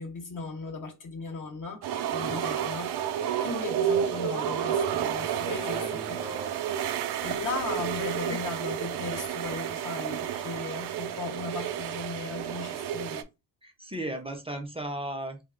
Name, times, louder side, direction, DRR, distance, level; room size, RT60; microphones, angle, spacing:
voice 1, 0.0-1.8 2.1-6.2 7.2-13.3, left 4 dB, 55° left, 0.9 m, -37 dB
sound 1, 1.8-13.2, right 9 dB, 80° right, 0.5 m, -31 dB
voice 2, 5.1-6.6 8.2-8.4 13.6-15.4, right 1 dB, 15° right, 0.5 m, -37 dB
3.2 x 2.0 x 3.6 m
cardioid pair, 115°, 39 cm